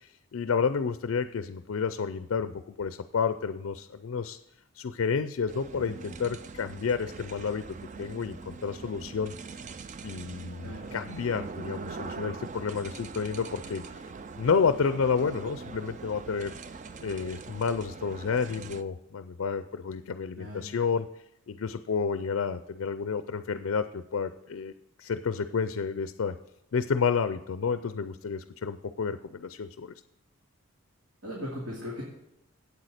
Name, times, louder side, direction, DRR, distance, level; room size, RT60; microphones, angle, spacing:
voice 1, 0.0-4.4 4.8-9.3 10.0-13.8 14.4-16.6 17.0-21.1 21.5-24.7 25.0-26.3 26.7-29.9, left 5 dB, 70° left, 11 dB, 0.4 m, -30 dB
sound 1, 5.5-18.8, right 4 dB, 35° right, 0.4 m, -42 dB
voice 2, 10.6-10.9 20.3-20.7 31.2-32.0, left 1 dB, 65° right, -5 dB, 2.5 m, -38 dB
8.4 x 8.3 x 6.5 m, 0.83 s
head